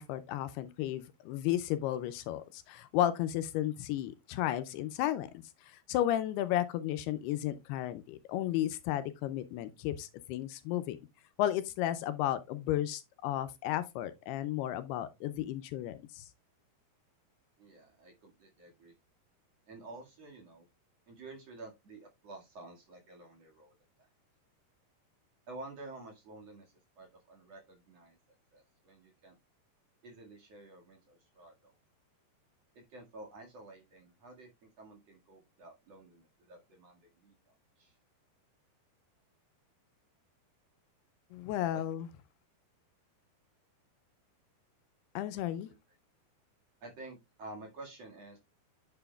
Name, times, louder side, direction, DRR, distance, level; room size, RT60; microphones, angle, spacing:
voice 1, 0.0-5.3 5.6-11.0 11.4-16.3 41.3-42.1 45.2-45.7, left 12 dB, 80° left, 2.5 m, -33 dB
voice 2, 17.6-18.9 19.7-20.7 21.1-23.7 25.5-28.2 28.5-29.3 30.0-31.8 32.7-37.3 37.8-38.0 41.7-41.8 45.7-45.8 46.8-48.4, right 2 dB, 45° right, 2.5 m, -51 dB
9.0 x 7.5 x 2.3 m
omnidirectional pair, 4.8 m